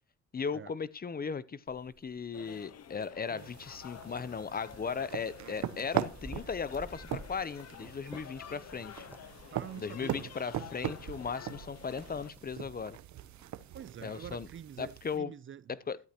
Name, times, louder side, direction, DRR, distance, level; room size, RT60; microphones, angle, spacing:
voice 1, 0.3-9.0 9.8-13.0 14.0-14.5 14.8-15.3 15.9-16.0, left 6 dB, 30° left, 0.7 m, -37 dB
sound 1, 1.7-13.8, right 1 dB, 5° right, 0.7 m, -54 dB
sound 2, 2.3-12.3, left 10 dB, 55° left, 1.0 m, -51 dB
sound 3, 3.4-15.2, right 11 dB, 70° right, 0.9 m, -41 dB
voice 2, 9.5-10.3 13.7-15.7, right 8 dB, 40° right, 0.6 m, -46 dB
13.0 x 11.0 x 3.0 m
cardioid pair, 90°, 30 cm